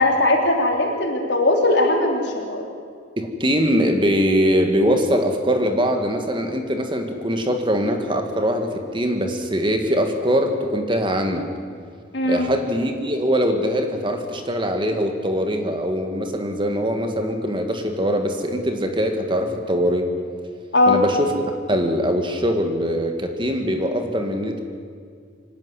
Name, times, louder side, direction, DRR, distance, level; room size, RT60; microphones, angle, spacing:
voice 1, 0.0-2.6 12.1-12.5 20.7-21.0, left 2 dB, 65° left, 1 dB, 3.4 m, -19 dB
voice 2, 3.2-11.5 12.3-20.1 20.9-21.3 21.7-24.6, equal, 25° right, 5 dB, 1.8 m, -22 dB
25.5 x 11.5 x 9.8 m, 2.1 s
head